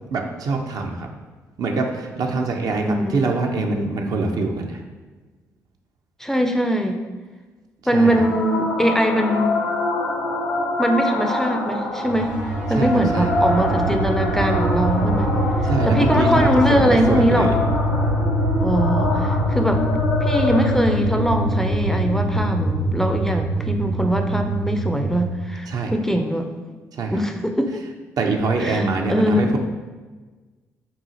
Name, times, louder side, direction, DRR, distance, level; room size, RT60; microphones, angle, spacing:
voice 1, 0.1-1.1 1.6-4.8 7.9-8.1 12.7-13.3 15.6-17.6 25.7-25.9 26.9-27.2 28.2-29.6, right 3 dB, 50° right, 3 dB, 0.5 m, -24 dB
voice 2, 2.8-3.2 6.2-7.0 7.9-9.6 10.8-15.3 15.6-17.5 18.6-19.8 20.2-26.5 27.1-27.8 28.6-29.5, equal, 5° left, 4 dB, 0.4 m, -22 dB
sound 1, 8.0-23.0, left 2 dB, 70° left, 0.6 m, -26 dB
sound 2, 12.0-25.3, right 1 dB, 85° right, 1.0 m, -23 dB
5.4 x 2.4 x 2.7 m, 1.3 s
figure-of-eight pair, 40°, 8 cm